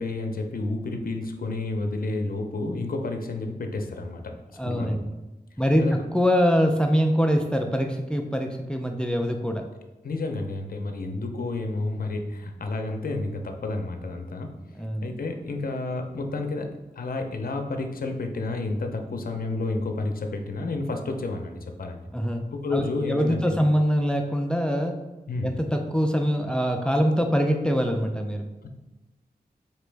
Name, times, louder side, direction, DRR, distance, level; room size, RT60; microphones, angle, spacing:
voice 1, 0.0-4.2 4.6-5.0 5.8-5.9 10.0-14.5 15.0-22.0 22.5-23.6 25.3-25.5 28.6-28.7, left 2 dB, 60° left, 4 dB, 0.6 m, -30 dB
voice 2, 4.6-5.1 5.6-9.7 14.8-15.1 22.1-22.4 22.7-25.0 25.4-28.4, equal, 5° left, 4 dB, 0.4 m, -24 dB
4.3 x 3.0 x 3.3 m, 1.1 s
cardioid pair, 55°, 17 cm